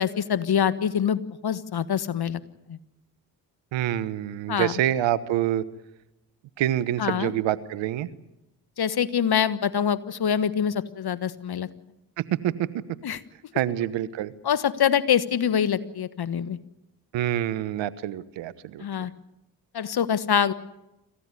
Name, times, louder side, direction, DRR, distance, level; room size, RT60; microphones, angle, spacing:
voice 1, 0.0-2.4 2.7-2.8 4.5-4.8 7.0-7.3 8.8-11.7 13.0-13.2 14.4-16.6 18.8-19.1 19.7-20.5, left 8 dB, 55° left, 15 dB, 1.5 m, -25 dB
voice 2, 3.7-5.7 6.6-8.1 12.2-12.7 13.5-14.3 17.1-18.8, right 12 dB, 80° right, 16 dB, 1.1 m, -26 dB
27.0 x 15.5 x 9.7 m, 0.93 s
supercardioid pair, 45°, 44 cm